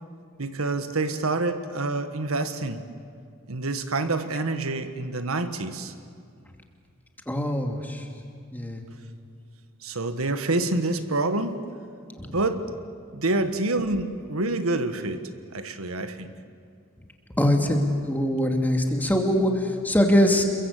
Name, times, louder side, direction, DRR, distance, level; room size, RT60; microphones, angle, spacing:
voice 1, 0.4-2.8 3.5-5.9 9.8-11.6 12.3-12.7 13.1-16.3, right 2 dB, 80° right, 9 dB, 1.5 m, -27 dB
voice 2, 7.3-8.0 8.5-8.8 12.2-12.4 17.4-20.4, left 1 dB, 10° left, 3 dB, 2.6 m, -23 dB
28.5 x 22.5 x 8.3 m, 2.3 s
head